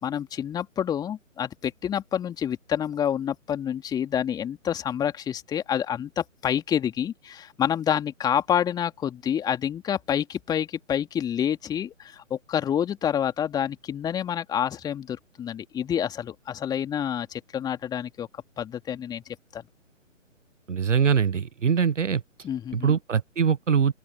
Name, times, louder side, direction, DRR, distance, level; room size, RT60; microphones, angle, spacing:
voice 1, 0.0-19.2 19.5-19.6 22.4-23.0, left 9 dB, 10° left, 2.5 m, -28 dB
voice 2, 20.7-22.2 22.7-23.9, right 6 dB, 65° right, 1.0 m, -23 dB
open air
figure-of-eight pair, 135°, 39 cm